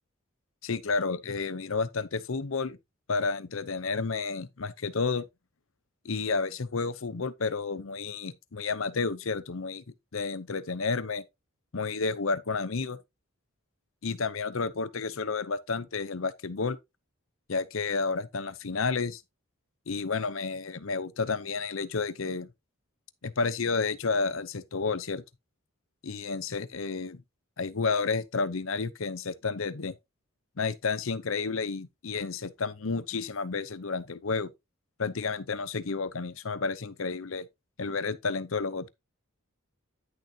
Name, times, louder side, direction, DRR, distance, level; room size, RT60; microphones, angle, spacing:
voice 1, 0.6-2.8 3.1-5.3 6.0-9.8 10.1-11.2 11.7-13.0 14.0-16.8 17.5-19.2 19.9-22.5 23.2-25.2 26.0-27.2 27.6-29.9 30.6-34.5 35.0-37.5 37.8-38.9, left 4 dB, 70° left, 0.8 m, -31 dB
10.0 x 6.5 x 2.8 m
head